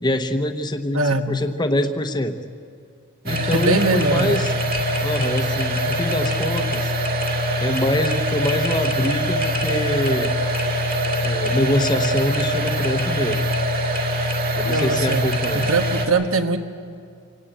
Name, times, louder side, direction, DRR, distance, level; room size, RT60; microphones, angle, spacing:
voice 1, 0.0-2.4 3.2-4.5 5.0-6.9 7.6-10.3 11.2-13.4 14.6-15.7, left 1 dB, 20° left, 6 dB, 1.0 m, -24 dB
voice 2, 0.9-1.4 3.4-4.4 14.6-15.2 15.5-16.6, right 3 dB, 65° right, 7 dB, 1.4 m, -22 dB
sound 1, 3.3-16.1, equal, 45° right, 2.9 m, -23 dB
27.0 x 18.0 x 9.1 m, 2.3 s
head